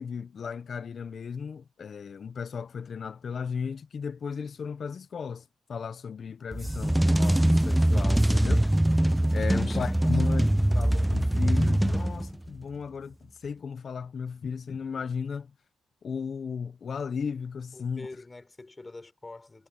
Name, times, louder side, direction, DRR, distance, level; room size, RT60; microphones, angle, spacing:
voice 1, 0.0-8.7 9.3-15.5 16.0-18.1, left 6 dB, 60° left, 1.1 m, -35 dB
sound 1, 6.5-12.5, right 1 dB, 10° right, 0.5 m, -23 dB
voice 2, 9.4-10.1 17.7-19.7, left 2 dB, 30° left, 4.1 m, -46 dB
supercardioid pair, 50°, 0 cm